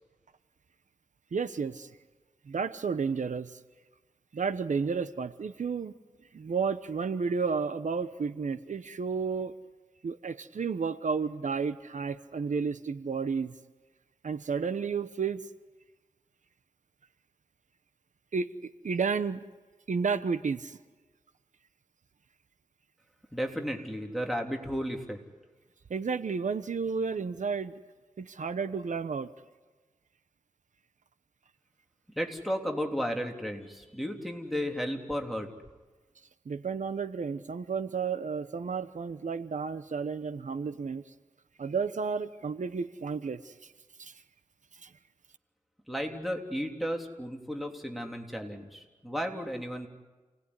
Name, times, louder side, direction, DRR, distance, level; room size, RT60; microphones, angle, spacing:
voice 1, 1.3-1.9 2.5-3.6 4.3-5.9 6.3-9.5 10.0-13.5 14.2-15.4 18.3-19.4 19.9-20.8 25.9-27.7 28.2-29.3 36.5-41.0 41.6-43.7 44.0-44.1 44.8-44.9, right 5 dB, 70° right, 12 dB, 1.0 m, -32 dB
voice 2, 23.3-25.2 32.1-35.5 45.9-49.9, equal, ahead, 2 dB, 3.4 m, -34 dB
29.0 x 19.5 x 9.8 m, 1.2 s
wide cardioid pair, 100°, 13 cm